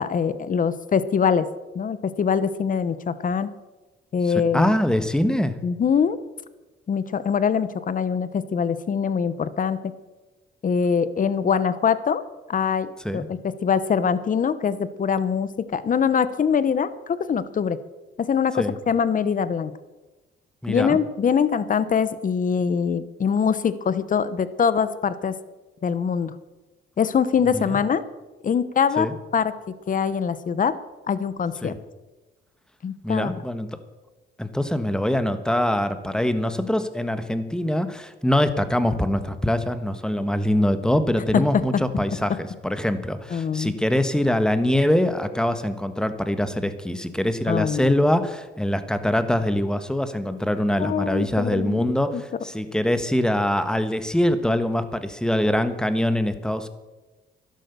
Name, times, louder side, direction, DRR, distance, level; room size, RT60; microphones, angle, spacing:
voice 1, 0.0-1.5 1.7-3.5 4.1-4.7 5.6-6.2 6.9-9.8 10.6-12.2 12.5-17.8 18.2-19.7 20.7-25.3 25.8-26.3 27.0-28.0 28.4-29.1 29.3-29.5 29.9-30.7 31.1-31.7 32.8-33.3 41.5-41.6 43.3-43.7 47.5-48.0 50.8-52.2, left 7 dB, 40° left, 14 dB, 1.0 m, -23 dB
voice 2, 4.2-5.6 13.0-13.3 18.6-18.7 20.6-21.0 27.5-27.8 29.0-29.1 31.6-31.8 33.0-33.8 34.4-56.7, left 1 dB, 5° left, 10 dB, 1.3 m, -23 dB
12.0 x 11.5 x 6.8 m, 1.1 s
cardioid pair, 90°, 20 cm